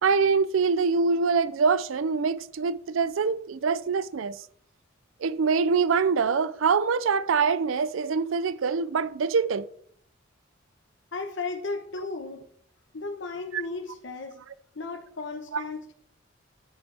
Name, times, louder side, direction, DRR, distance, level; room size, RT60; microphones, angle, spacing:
voice 1, 0.0-4.4 5.2-9.7 13.5-13.6 15.5-15.6, right 5 dB, 80° right, 0.5 m, -24 dB
voice 2, 11.1-12.5 12.9-14.4 14.7-15.9, left 3 dB, 65° left, 1.0 m, -35 dB
13.0 x 7.2 x 3.4 m
head